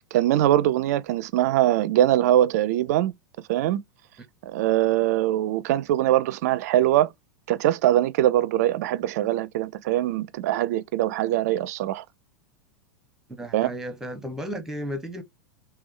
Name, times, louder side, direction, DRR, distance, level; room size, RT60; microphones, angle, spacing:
voice 1, 0.1-3.1 3.5-3.8 4.4-7.1 7.5-12.0 13.5-13.7, right 13 dB, 50° right, 0.4 m, -22 dB
voice 2, 13.3-15.2, equal, 5° right, 0.9 m, -34 dB
3.5 x 3.1 x 3.1 m
figure-of-eight pair, 90°, 11 cm